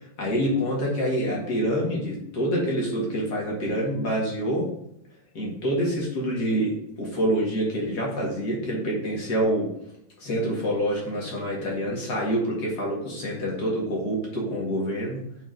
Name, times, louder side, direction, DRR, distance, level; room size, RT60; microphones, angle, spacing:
voice 1, 0.2-4.7 5.3-9.7 10.2-15.2, equal, 40° left, -2 dB, 1.6 m, -26 dB
10.0 x 3.9 x 3.9 m, 0.77 s
omnidirectional pair, 4.4 m